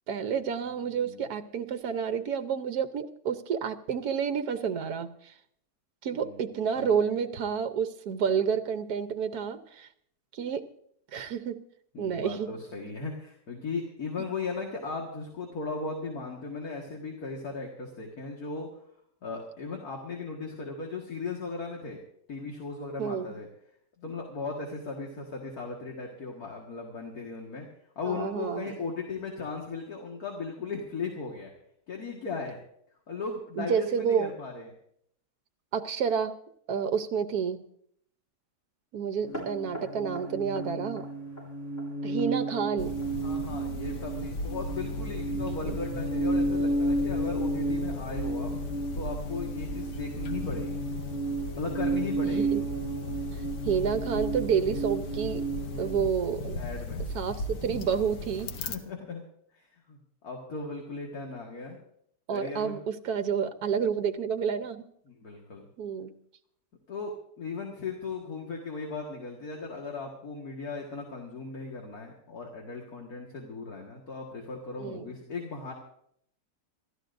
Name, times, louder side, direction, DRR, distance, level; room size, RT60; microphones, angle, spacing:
voice 1, 0.1-5.1 6.0-9.9 10.3-10.7 11.1-11.6 12.0-12.6 23.0-23.3 28.0-28.8 33.6-34.3 35.7-36.4 36.7-37.6 38.9-41.1 42.0-43.1 45.5-45.8 52.2-52.6 53.6-55.4 55.8-56.6 57.1-58.5 62.3-64.8 65.8-66.1 74.8-75.1, right 7 dB, 65° right, 10 dB, 1.4 m, -29 dB
voice 2, 0.9-1.2 6.2-7.0 11.9-18.7 19.2-22.0 22.3-23.5 24.0-27.7 28.0-31.5 31.9-32.6 33.1-34.7 43.2-48.5 48.9-50.8 51.5-52.5 56.6-57.0 58.7-59.2 59.5-60.0 60.2-61.8 62.3-62.8 65.2-65.7 66.9-75.7, left 4 dB, 60° left, 0 dB, 2.3 m, -37 dB
sound 1, 39.2-56.0, right 2 dB, 35° left, 6.5 m, -32 dB
sound 2, 42.8-58.8, left 1 dB, 80° left, 1.6 m, -37 dB
26.5 x 13.0 x 2.6 m, 0.68 s
omnidirectional pair, 1.8 m